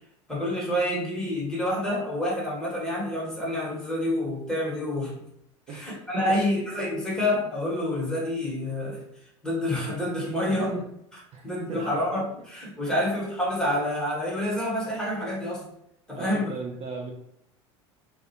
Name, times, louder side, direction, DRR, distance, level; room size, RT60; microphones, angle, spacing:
voice 1, 0.3-5.2 5.7-9.0 9.4-10.7 11.4-15.7 16.1-16.5, left 1 dB, 5° left, -5 dB, 1.1 m, -28 dB
voice 2, 5.7-6.6 10.5-10.9 11.3-12.0 12.9-13.0 16.2-17.1, right 3 dB, 40° right, -1 dB, 0.5 m, -37 dB
2.3 x 2.1 x 2.8 m, 0.76 s
hypercardioid pair, 85°, 15 cm